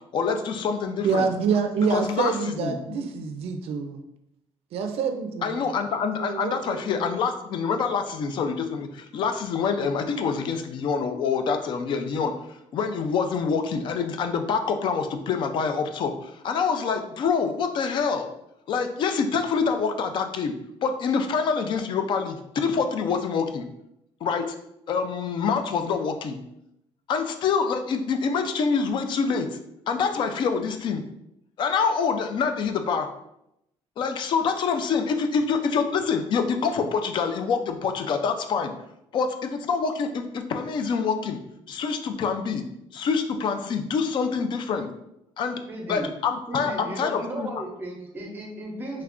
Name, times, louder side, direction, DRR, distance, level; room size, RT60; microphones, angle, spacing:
voice 1, 0.1-1.3 1.9-2.8 5.4-12.3 12.7-18.3 18.7-20.5 20.8-23.7 24.2-24.5 24.9-26.4 27.1-29.5 29.9-31.0 31.6-33.1 34.0-38.7 39.1-41.4 41.7-42.6 42.9-44.9 45.4-45.6 45.9-47.5, left 5 dB, 45° left, 7 dB, 0.3 m, -26 dB
voice 2, 1.0-4.0 4.7-5.6 6.2-6.9, right 6 dB, 65° right, 5 dB, 0.4 m, -26 dB
voice 3, 45.7-46.1 46.5-49.0, right 1 dB, 20° right, 0 dB, 0.7 m, -35 dB
3.2 x 2.4 x 3.5 m, 0.80 s
cardioid pair, 175°, 11 cm